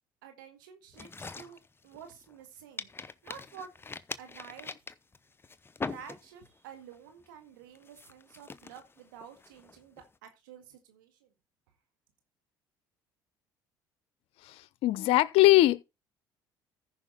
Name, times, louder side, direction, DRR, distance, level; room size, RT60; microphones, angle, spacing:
voice 1, 0.2-2.9 3.2-3.7 4.2-4.8 5.8-11.3, right 7 dB, 90° right, 1.9 m, -50 dB
sound 1, 0.9-2.4 2.8-6.6 6.9-7.3 7.8-10.1, left 4 dB, 20° left, 0.8 m, -42 dB
voice 2, 14.4-15.8, left 17 dB, 70° left, 0.7 m, -22 dB
14.0 x 5.7 x 3.9 m
hypercardioid pair, 70°, 10 cm